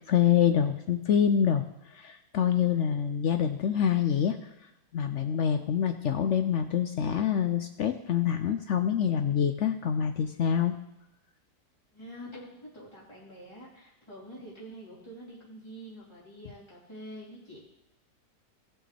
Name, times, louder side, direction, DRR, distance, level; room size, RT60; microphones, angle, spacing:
voice 1, 0.0-1.6 1.9-4.4 4.9-10.7, left 8 dB, 65° left, 8 dB, 0.7 m, -26 dB
voice 2, 11.9-17.6, equal, 15° left, -7 dB, 3.4 m, -46 dB
18.5 x 6.2 x 3.4 m, 0.90 s
omnidirectional pair, 1.8 m